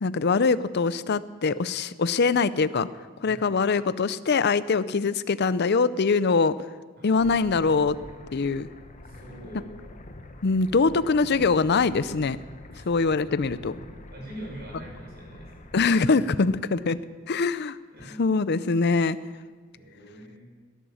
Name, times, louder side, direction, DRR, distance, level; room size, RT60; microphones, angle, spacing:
voice 1, 0.0-2.9 3.2-6.5 7.0-8.0 8.3-8.7 10.4-12.4 12.9-13.7 15.7-17.0 17.3-17.8 18.2-19.2, left 4 dB, 50° left, 16 dB, 0.5 m, -23 dB
voice 2, 3.2-3.6 7.0-7.2 9.0-9.7 12.7-12.9 14.1-16.1 17.9-18.2 19.7-20.4, right 1 dB, 45° right, -3 dB, 6.6 m, -44 dB
sound 1, 7.1-15.9, left 1 dB, 35° left, 0.9 m, -45 dB
16.5 x 11.0 x 7.1 m, 1.4 s
head